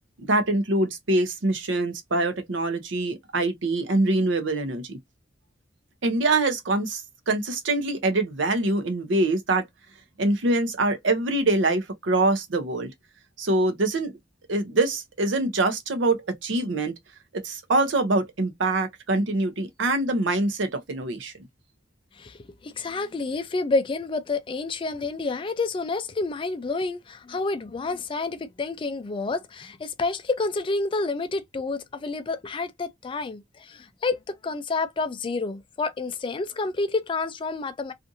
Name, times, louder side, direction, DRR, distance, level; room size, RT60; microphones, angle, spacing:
voice 1, 0.2-5.0 6.0-9.6 10.2-12.9 13.4-14.1 14.5-16.9 17.4-21.3, right 2 dB, 80° right, 0.7 m, -24 dB
voice 2, 22.2-37.9, left 3 dB, 25° left, 0.3 m, -29 dB
2.6 x 2.5 x 2.6 m
head